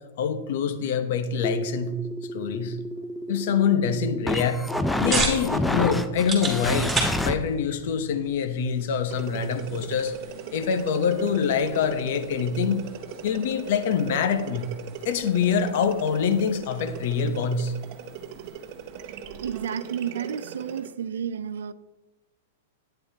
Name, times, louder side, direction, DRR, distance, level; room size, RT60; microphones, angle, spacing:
voice 1, 0.2-2.0 2.3-2.8 3.3-4.6 5.0-12.9 13.2-14.7 15.0-17.7, left 6 dB, 60° left, 0.8 m, -25 dB
sound 1, 1.4-7.3, left 1 dB, 5° left, 0.5 m, -29 dB
sound 2, 4.5-19.6, right 3 dB, 10° right, 2.3 m, -36 dB
sound 3, 9.1-20.9, right 8 dB, 45° right, 0.7 m, -39 dB
voice 2, 19.4-21.7, right 8 dB, 90° right, 0.4 m, -31 dB
10.5 x 9.1 x 2.8 m
hypercardioid pair, 145°, 0 cm